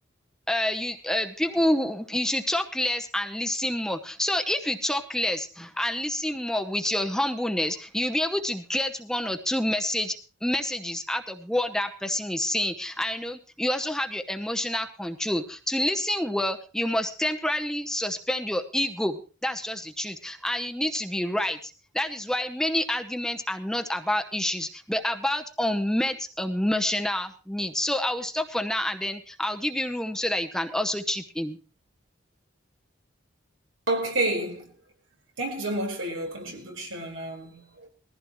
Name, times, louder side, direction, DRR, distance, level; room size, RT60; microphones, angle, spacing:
voice 1, 0.5-31.6, left 1 dB, 5° left, 0.8 m, -28 dB
voice 2, 33.9-34.7 35.4-37.9, right 2 dB, 90° right, 4.6 m, -30 dB
20.5 x 15.0 x 3.1 m
head